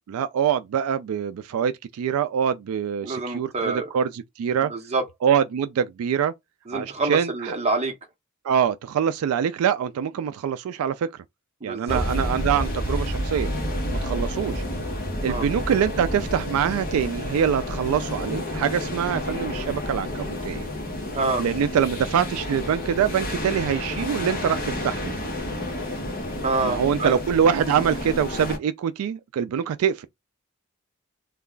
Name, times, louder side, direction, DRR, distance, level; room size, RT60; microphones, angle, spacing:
voice 1, 0.1-4.7 5.2-6.3 6.7-7.6 8.4-11.1 11.6-13.5 13.9-14.6 15.2-20.7 21.4-25.1 26.6-30.1, right 8 dB, 75° right, 0.3 m, -24 dB
voice 2, 3.0-3.9 4.7-5.0 6.7-7.9 11.6-12.0 15.3-15.4 21.1-21.4 26.4-27.2, right 3 dB, 30° right, 0.9 m, -26 dB
sound 1, 11.9-28.6, left 1 dB, 40° left, 1.1 m, -30 dB
3.1 x 2.3 x 3.7 m
head